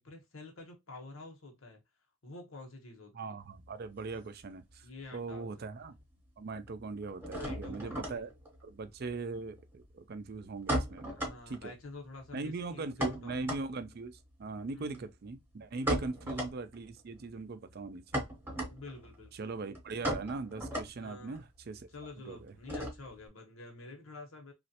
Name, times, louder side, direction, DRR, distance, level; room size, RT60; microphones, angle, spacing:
voice 1, 0.0-1.8 2.2-3.3 4.8-5.5 7.3-8.3 11.1-13.5 14.7-15.1 15.8-16.1 18.7-19.4 21.0-21.4 21.9-24.5, left 2 dB, 80° left, 1.0 m, -49 dB
voice 2, 3.1-5.9 6.4-8.3 8.6-11.2 11.5-11.7 12.3-18.2 19.3-21.9 22.3-22.5, right 3 dB, 50° right, 0.4 m, -40 dB
sound 1, 3.4-5.0 5.3-6.0 6.3-23.3, right 1 dB, 10° right, 0.9 m, -38 dB
3.1 x 2.4 x 2.8 m
head